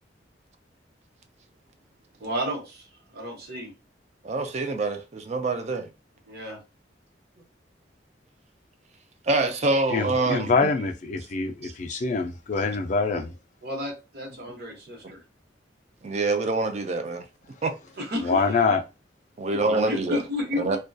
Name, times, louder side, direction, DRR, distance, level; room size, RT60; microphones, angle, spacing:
voice 1, 2.2-3.7 6.3-6.6 9.4-9.5 13.6-15.2 18.0-18.8 19.9-20.8, left 1 dB, 55° right, 1.0 m, -32 dB
voice 2, 4.2-5.9 9.3-10.5 11.6-12.0 16.0-17.3 17.6-17.7 19.4-20.2 20.6-20.8, right 3 dB, 35° right, 0.4 m, -26 dB
voice 3, 9.9-13.3 18.2-18.8, left 4 dB, 40° left, 0.4 m, -25 dB
2.3 x 2.2 x 2.5 m
head